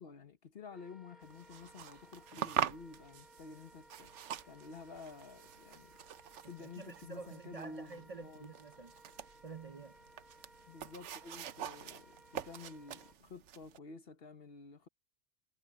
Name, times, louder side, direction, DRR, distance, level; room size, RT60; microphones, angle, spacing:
voice 1, 0.0-4.1 4.4-6.0 6.5-8.5 10.7-14.9, left 4 dB, 55° left, 1.2 m, -51 dB
Wind instrument woodwind instrument, 0.7-13.2, equal, ahead, 3.5 m, -62 dB
sound 1, 1.2-13.8, right 10 dB, 80° right, 1.1 m, -44 dB
sound 2, 3.5-13.0, left 1 dB, 80° left, 4.1 m, -75 dB
voice 2, 6.6-8.9 9.4-10.0, right 4 dB, 45° right, 0.5 m, -49 dB
omnidirectional pair, 1.2 m